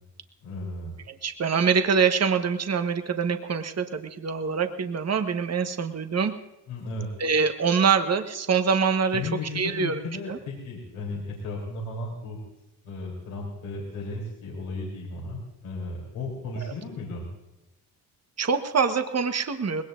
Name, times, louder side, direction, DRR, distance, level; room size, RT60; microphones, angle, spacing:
voice 1, 0.4-1.0 6.7-7.1 9.1-12.4 12.8-17.3, left 2 dB, 80° left, -3 dB, 3.8 m, -35 dB
voice 2, 1.2-6.4 7.2-9.2 9.5-10.0 10.3-10.4 16.6-16.7 18.4-19.8, right 6 dB, 35° right, 8 dB, 1.4 m, -24 dB
21.0 x 17.5 x 2.6 m, 0.95 s
hypercardioid pair, 50°, 46 cm